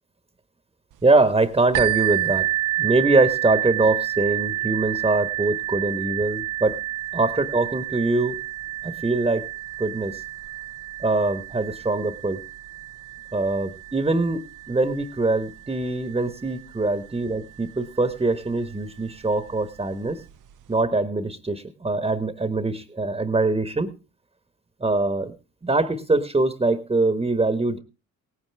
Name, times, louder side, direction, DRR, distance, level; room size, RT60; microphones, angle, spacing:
voice 1, 1.0-2.5 2.8-6.8 7.1-8.4 8.8-9.5 9.8-10.2 11.0-12.4 13.3-20.2 20.7-23.9 24.8-25.3 25.6-27.8, right 2 dB, 10° right, 11 dB, 1.4 m, -23 dB
sound 1, 1.7-17.3 18.1-18.2 18.7-18.8, right 14 dB, 45° right, 0.8 m, -30 dB
18.5 x 9.6 x 3.5 m, 0.31 s
hypercardioid pair, 50°, 46 cm